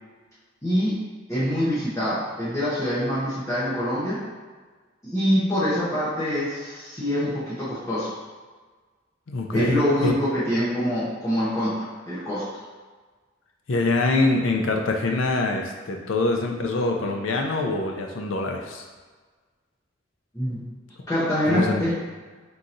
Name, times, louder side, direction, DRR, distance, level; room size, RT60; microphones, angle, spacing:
voice 1, 0.6-1.0 1.3-4.2 5.0-8.1 9.5-12.4 20.3-20.6 21.1-21.9, equal, 15° left, -12 dB, 1.0 m, -25 dB
voice 2, 9.3-10.1 13.7-18.8 21.5-21.9, left 2 dB, 80° left, 2 dB, 0.6 m, -24 dB
3.8 x 2.9 x 3.8 m, 1.4 s
head